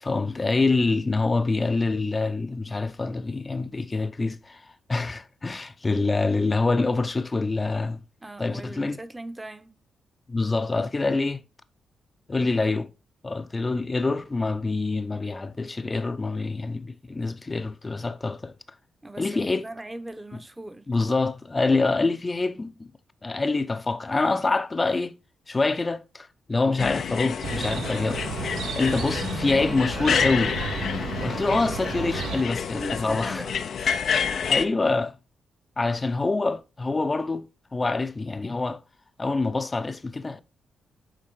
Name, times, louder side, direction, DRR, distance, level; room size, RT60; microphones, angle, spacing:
voice 1, 0.0-4.6 4.9-8.0 8.4-9.0 10.3-11.4 12.3-12.9 13.2-18.5 19.2-19.7 20.9-22.9 23.2-25.2 25.5-30.5 31.2-33.4 34.4-35.1 35.8-38.8 39.2-40.4, left 3 dB, 30° left, 0.7 m, -26 dB
voice 2, 8.2-9.8 19.0-20.9 32.7-33.9 34.5-34.7, right 1 dB, 15° right, 1.0 m, -39 dB
sound 1, 26.8-34.6, left 7 dB, 70° left, 0.7 m, -28 dB
Chirp tweet, 27.4-32.4, right 7 dB, 75° right, 0.6 m, -33 dB
8.8 x 3.8 x 4.6 m
cardioid pair, 65°, 0 cm